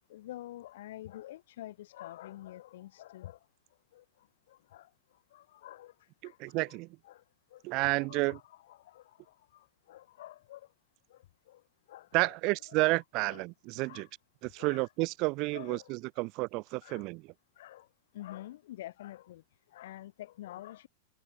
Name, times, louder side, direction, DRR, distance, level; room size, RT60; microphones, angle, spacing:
voice 1, 0.1-3.4 3.9-4.0 4.5-4.9 5.3-6.4 6.7-6.8 7.0-7.2 7.5-10.7 11.1-11.6 11.9-12.8 13.2-13.4 13.8-14.1 14.6-14.9 15.5-15.9 16.8-17.1 17.6-17.9 18.1-19.4 19.7-20.9, left 14 dB, 70° left, 6.0 m, -48 dB
voice 2, 6.2-6.9 7.6-8.4 12.1-14.1 14.4-17.2, right 25 dB, 50° right, 1.7 m, -31 dB
open air
hypercardioid pair, 110°, 0 cm